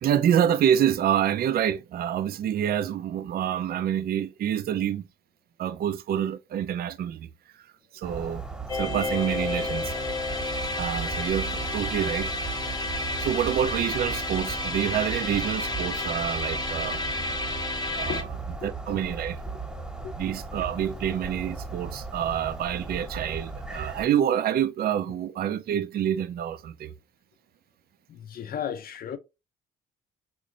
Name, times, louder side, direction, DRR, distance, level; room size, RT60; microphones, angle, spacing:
voice 1, 0.0-5.1 5.6-7.3 7.9-8.4 8.7-9.9 10.8-12.3 13.2-17.0 17.9-18.1 18.6-19.4 20.2-26.9, right 9 dB, 50° right, 0.4 m, -27 dB
sound 1, 8.0-24.1, right 3 dB, 5° right, 1.1 m, -37 dB
sound 2, 8.7-18.2, left 2 dB, 20° left, 0.8 m, -31 dB
voice 2, 28.1-29.2, left 9 dB, 50° left, 0.5 m, -35 dB
4.0 x 2.5 x 2.9 m
cardioid pair, 90°, 20 cm